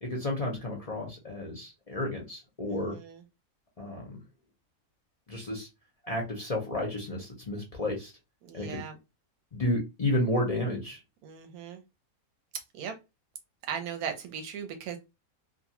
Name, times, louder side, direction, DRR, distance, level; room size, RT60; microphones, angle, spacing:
voice 1, 0.0-2.9 3.8-4.2 5.3-5.7 6.0-8.1 8.5-8.8 9.5-11.0, left 1 dB, 45° left, -1 dB, 0.5 m, -31 dB
voice 2, 2.7-3.2 8.5-9.0 11.2-11.8 12.7-13.0 13.7-15.0, right 7 dB, 90° right, 6 dB, 1.1 m, -38 dB
2.6 x 2.3 x 2.8 m, 0.24 s
omnidirectional pair, 1.5 m